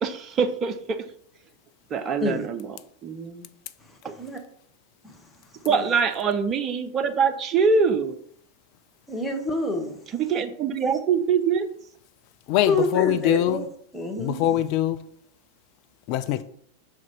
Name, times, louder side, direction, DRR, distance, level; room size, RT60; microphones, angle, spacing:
voice 1, 0.0-1.1 1.9-2.7 3.0-3.5 5.6-8.2 10.2-11.7, right 5 dB, 30° right, 0.7 m, -24 dB
voice 2, 3.9-4.4 5.0-5.2 5.7-5.9 9.1-10.0 10.8-10.9 12.7-13.6 13.9-14.4, left 1 dB, 5° left, 1.2 m, -28 dB
voice 3, 12.5-13.6 14.2-15.0 16.1-16.4, left 13 dB, 45° left, 0.5 m, -23 dB
6.0 x 4.2 x 4.6 m
figure-of-eight pair, 90°, 0 cm